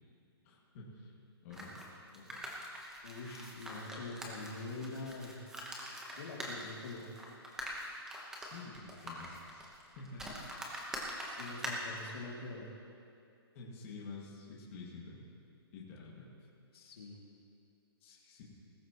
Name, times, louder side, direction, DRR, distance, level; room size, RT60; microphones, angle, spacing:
voice 1, 0.4-1.1 1.4-1.8 2.1-2.4 8.3-9.6 10.0-10.4 13.5-15.2 15.7-16.3 18.0-18.4, left 4 dB, 30° left, -5 dB, 2.1 m, -49 dB
sound 1, 1.5-12.1, equal, 5° right, 1.0 m, -44 dB
voice 2, 3.0-5.4 6.1-7.1 11.2-12.8 16.7-17.2, left 3 dB, 65° left, -2 dB, 2.8 m, -44 dB
20.0 x 13.0 x 3.1 m, 2.5 s
hypercardioid pair, 170°, 13 cm